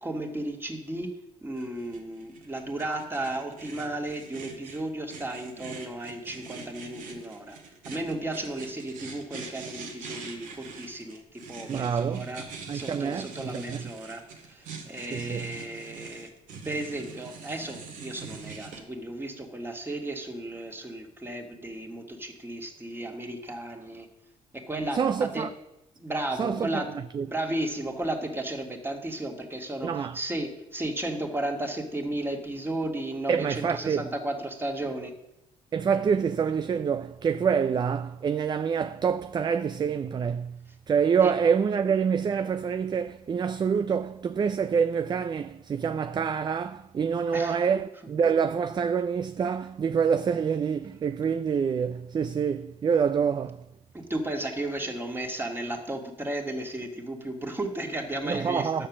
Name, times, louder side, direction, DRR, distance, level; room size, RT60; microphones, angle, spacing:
voice 1, 0.0-1.1 1.4-7.6 7.8-12.4 12.7-16.3 16.6-24.1 24.5-25.5 26.0-26.9 27.2-35.1 41.2-41.3 47.3-47.8 53.9-58.9, right 1 dB, 15° right, 2.2 m, -34 dB
sound 1, 1.6-18.8, right 5 dB, 80° right, 2.1 m, -44 dB
voice 2, 11.7-12.3 12.7-13.9 15.1-15.5 24.9-25.5 26.4-27.3 29.8-30.2 33.3-34.1 35.7-53.6 58.2-58.9, right 6 dB, 35° right, 0.4 m, -26 dB
10.0 x 6.8 x 7.4 m
cardioid pair, 95°, 14 cm